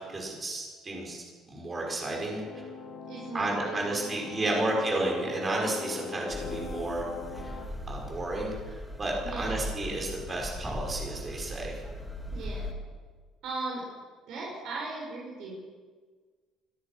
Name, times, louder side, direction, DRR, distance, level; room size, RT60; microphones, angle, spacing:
voice 1, 0.1-2.7 3.3-7.1 7.4-7.6 7.9-11.7, right 2 dB, 20° right, -1 dB, 5.7 m, -32 dB
sound 1, 2.3-7.7, left 5 dB, 50° left, 3.7 m, -41 dB
voice 2, 3.1-4.8 9.2-9.7 12.3-12.7 13.4-13.8 14.3-15.5, right 3 dB, 60° right, -3 dB, 6.2 m, -38 dB
sound 2, 6.3-12.7, equal, ahead, 2.2 m, -39 dB
24.5 x 18.5 x 6.2 m, 1.5 s
cardioid pair, 160°, 0 cm